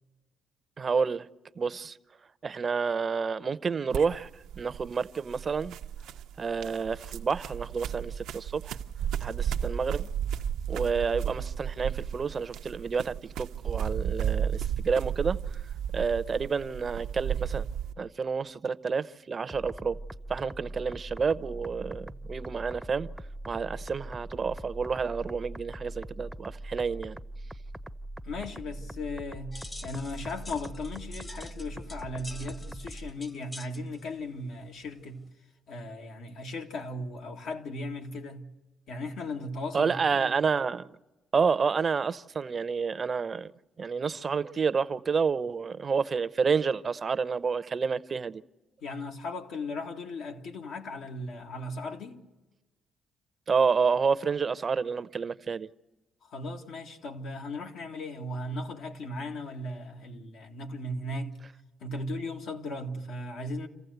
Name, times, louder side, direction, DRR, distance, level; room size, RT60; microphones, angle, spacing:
voice 1, 0.8-1.3 1.6-2.0 2.4-4.3 4.6-5.8 6.4-8.8 9.2-10.1 10.7-15.4 15.9-17.6 18.0-20.0 20.3-23.1 23.5-27.2 39.7-40.9 41.3-43.5 43.8-48.4 53.5-55.7, right 5 dB, 40° right, 0.6 m, -29 dB
sound 1, 3.9-17.9, right 9 dB, 90° right, 0.6 m, -33 dB
sound 2, 19.5-33.1, right 1 dB, ahead, 0.6 m, -42 dB
voice 2, 28.2-35.2 35.7-38.5 38.9-40.3 48.8-52.2 56.2-61.4 61.8-63.7, left 2 dB, 80° left, 1.9 m, -37 dB
sound 3, 29.5-35.3, left 2 dB, 25° left, 0.9 m, -48 dB
27.5 x 15.0 x 8.0 m
cardioid pair, 90°, 0 cm